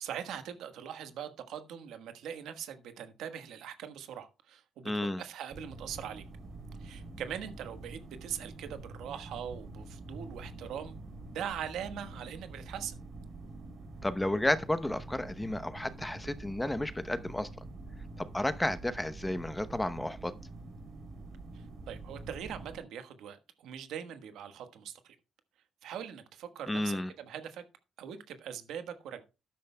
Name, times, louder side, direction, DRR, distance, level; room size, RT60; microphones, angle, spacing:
voice 1, 0.0-4.9 5.2-6.2 6.8-10.9 11.3-13.0 21.5-25.2 25.8-27.6 28.0-29.2, right 9 dB, 85° right, 1.3 m, -41 dB
voice 2, 4.8-5.2 14.0-17.5 18.2-20.3 26.7-27.1, left 1 dB, 10° left, 0.8 m, -32 dB
sound 1, 5.5-22.8, right 2 dB, 65° right, 3.1 m, -46 dB
13.0 x 10.5 x 2.2 m
cardioid pair, 90°, 0 cm